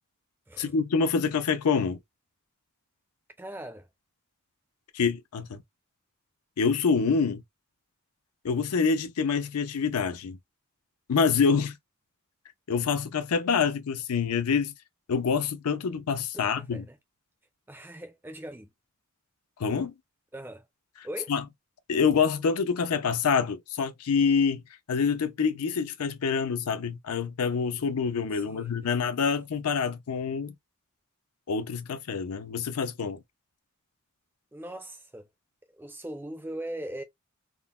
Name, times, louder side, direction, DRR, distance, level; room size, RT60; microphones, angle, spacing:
voice 1, 0.6-2.0 4.9-5.6 6.6-7.4 8.4-10.4 11.1-11.8 12.7-14.7 15.1-16.9 19.6-19.9 21.3-21.4 21.9-24.6 24.9-30.5 31.5-33.2, left 5 dB, 85° left, 0.5 m, -26 dB
voice 2, 3.4-3.9 16.3-17.0 17.7-18.7 20.3-20.7 21.0-21.3 28.3-28.9 34.5-35.3 35.7-37.0, right 1 dB, 10° right, 0.4 m, -40 dB
3.7 x 2.0 x 2.3 m
head